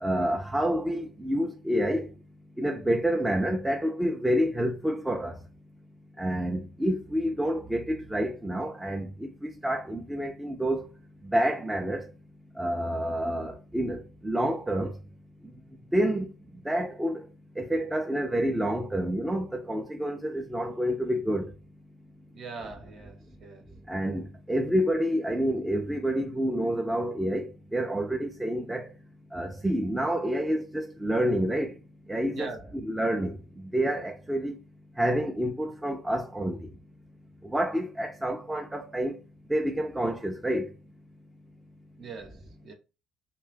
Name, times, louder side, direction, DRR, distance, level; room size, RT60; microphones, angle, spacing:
voice 1, 0.0-2.1 2.6-5.4 6.2-10.9 11.3-12.1 12.6-14.9 15.9-16.3 16.7-17.2 17.6-21.5 23.9-28.9 29.3-31.7 32.1-33.4 33.7-34.5 35.0-36.6 37.5-39.2 39.5-40.7, equal, 10° right, 0.4 m, -28 dB
voice 2, 22.3-23.6 32.3-32.7 42.0-42.7, right 4 dB, 55° right, 0.8 m, -41 dB
2.7 x 2.2 x 3.3 m
cardioid pair, 95°, 0 cm